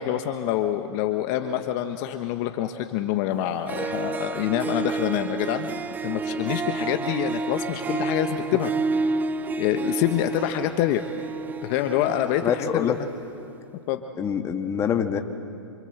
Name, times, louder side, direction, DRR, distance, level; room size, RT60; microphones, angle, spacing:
voice 1, 0.0-5.7 6.0-8.7 9.6-11.0 11.6-13.1 13.9-14.0, left 12 dB, 40° left, 7 dB, 1.3 m, -26 dB
Harp, 3.4-3.5 3.7-13.2, right 4 dB, 10° right, 0.5 m, -30 dB
voice 2, 12.4-13.0 14.2-15.2, left 8 dB, 20° left, 5 dB, 1.7 m, -25 dB
28.0 x 26.0 x 8.0 m, 2.6 s
hypercardioid pair, 135°, 15 cm